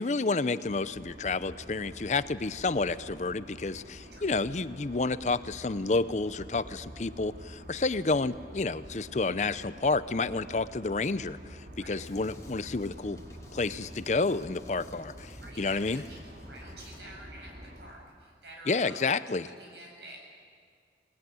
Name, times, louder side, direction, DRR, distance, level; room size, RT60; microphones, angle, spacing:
voice 1, 0.0-13.2 13.5-15.3 15.6-16.0 18.7-19.5, left 3 dB, 40° left, 14 dB, 0.6 m, -30 dB
sound 1, 0.6-17.9, equal, 50° right, 3.1 m, -48 dB
Drum kit, 12.0-17.0, left 1 dB, 20° left, 2.1 m, -53 dB
voice 2, 15.4-20.2, right 1 dB, 75° right, 0 dB, 7.9 m, -49 dB
26.5 x 19.5 x 9.4 m, 2.1 s
head